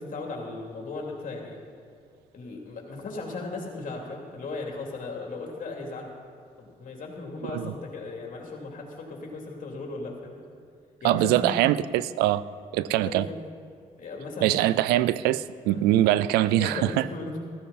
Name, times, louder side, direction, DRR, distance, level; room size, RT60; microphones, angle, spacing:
voice 1, 0.0-1.6 2.3-6.1 6.6-10.4 11.0-11.6 13.0-13.4 14.0-14.6 15.7-15.8 16.5-17.3, left 3 dB, 55° left, 0 dB, 3.1 m, -37 dB
voice 2, 11.0-12.4 12.7-13.3 14.4-17.1, right 14 dB, 90° right, 17 dB, 0.4 m, -23 dB
14.5 x 14.0 x 4.2 m, 2.3 s
supercardioid pair, 65°, 16 cm